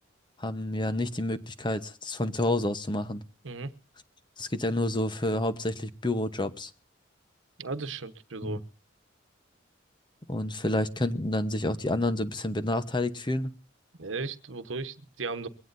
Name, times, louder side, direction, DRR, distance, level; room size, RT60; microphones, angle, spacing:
voice 1, 0.4-3.2 4.4-6.7 8.4-8.6 10.3-13.5, left 1 dB, 25° left, 11 dB, 1.0 m, -29 dB
voice 2, 7.6-8.6 14.0-15.5, right 3 dB, 80° right, 11 dB, 1.2 m, -35 dB
22.5 x 17.0 x 2.7 m, 0.36 s
head